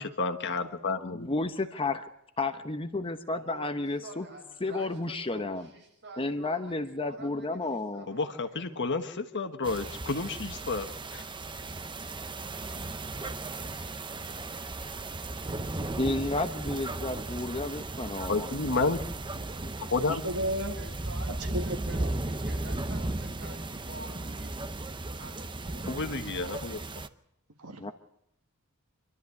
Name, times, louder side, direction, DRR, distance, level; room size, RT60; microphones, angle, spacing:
voice 1, 0.0-1.3 8.1-11.2 18.3-19.0 19.9-20.2 25.9-26.8, left 3 dB, 55° left, 7 dB, 1.5 m, -31 dB
voice 2, 1.0-2.1 2.4-4.3 4.6-5.7 6.2-8.1 16.0-18.5 27.8-27.9, left 2 dB, 25° left, 8 dB, 1.0 m, -32 dB
voice 3, 3.3-9.0 20.7-24.5 25.1-26.2, right 2 dB, 55° right, 1 dB, 7.5 m, -48 dB
sound 1, 9.6-27.1, right 2 dB, 20° right, 0.7 m, -36 dB
voice 4, 20.1-20.8 21.3-22.0 27.6-27.9, equal, 75° right, 5 dB, 1.7 m, -34 dB
26.0 x 13.0 x 8.4 m, 0.79 s
head